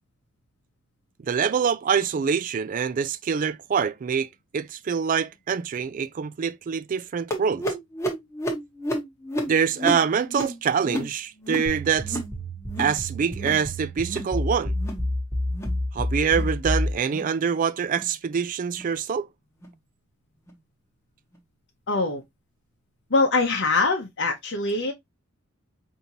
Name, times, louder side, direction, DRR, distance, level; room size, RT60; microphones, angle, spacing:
voice 1, 1.2-4.3 4.5-7.7 9.5-12.2 12.8-14.7 15.9-19.3, right 6 dB, 40° right, 0.3 m, -25 dB
sound 1, 7.3-12.4 12.6-13.0 13.3-13.7 14.0-14.4 14.7-15.1 15.5-15.8 16.3-16.5 17.1-17.3 17.9-18.1 18.7-18.9 19.6-19.7 20.5-20.6, equal, 15° left, 1.0 m, -32 dB
sound 2, 11.7-17.0, left 1 dB, 5° right, 1.2 m, -29 dB
voice 2, 21.9-22.2 23.1-24.9, left 3 dB, 55° left, 0.8 m, -23 dB
5.1 x 2.7 x 2.8 m
head